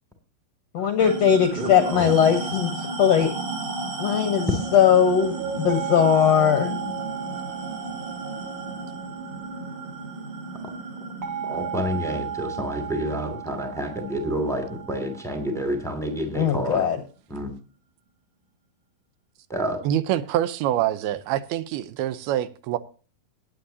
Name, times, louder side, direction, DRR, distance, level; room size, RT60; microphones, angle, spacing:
voice 1, 0.7-3.3 4.0-6.8 16.3-17.0, left 8 dB, 70° left, 1.6 m, -20 dB
sound 1, 1.0-15.8, right 3 dB, 55° right, 3.9 m, -34 dB
voice 2, 1.5-2.1 11.4-16.9 17.3-17.5 19.5-19.8, equal, ahead, 1.3 m, -29 dB
sound 2, 5.7-10.3 11.2-15.9, right 8 dB, 40° right, 1.7 m, -36 dB
voice 3, 19.9-22.8, right 12 dB, 85° right, 2.7 m, -25 dB
18.0 x 9.2 x 2.8 m
omnidirectional pair, 4.4 m